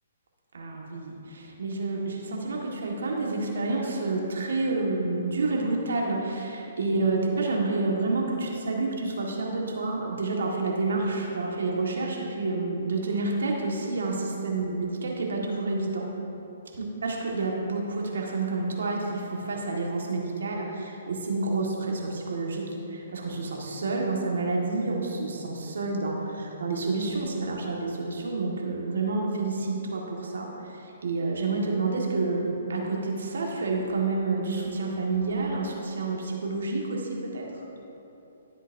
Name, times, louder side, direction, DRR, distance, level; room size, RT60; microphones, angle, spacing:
voice 1, 0.5-16.0 17.0-37.5, right 3 dB, 80° right, -1 dB, 1.7 m, -29 dB
13.0 x 8.0 x 2.7 m, 3.0 s
hypercardioid pair, 145°, 0 cm